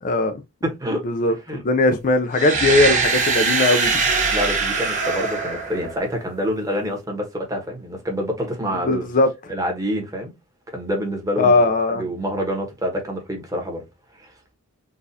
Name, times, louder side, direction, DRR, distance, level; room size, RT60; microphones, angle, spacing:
voice 1, 0.0-0.4 1.0-4.0 8.9-9.3 11.4-12.0, left 2 dB, 40° left, 0.4 m, -19 dB
voice 2, 0.6-1.0 1.5-1.6 4.3-9.1 9.5-10.3 10.7-11.6 11.9-13.8 14.2-14.3, equal, 15° right, 1.0 m, -27 dB
sound 1, 2.3-6.3, right 4 dB, 35° right, 1.2 m, -22 dB
4.0 x 2.4 x 2.7 m
head